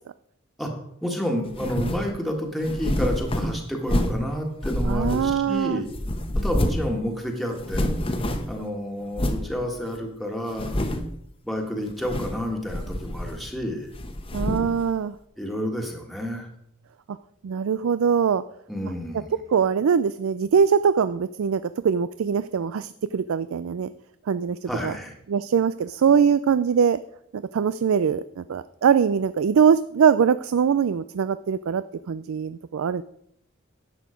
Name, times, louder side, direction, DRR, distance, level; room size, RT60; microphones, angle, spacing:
voice 1, 1.0-5.9 6.4-7.9 8.5-10.8 11.4-13.9 15.4-16.5 18.7-19.3 24.7-25.2, equal, ahead, 1 dB, 1.6 m, -30 dB
sound 1, 1.5-2.1 2.6-4.3 4.6-5.6 5.9-6.9 7.2-7.3 7.5-8.6 9.1-9.5 10.0-10.1 10.5-11.2 11.9-12.4 12.7-13.6 13.9-14.7, left 1 dB, 25° left, 1.0 m, -27 dB
voice 2, 4.9-5.8 14.3-15.1 17.1-17.2 17.4-18.4 19.5-23.9 24.3-24.9 25.3-27.0 27.3-33.0, right 7 dB, 80° right, 15 dB, 0.4 m, -22 dB
11.0 x 8.3 x 5.1 m, 0.73 s
head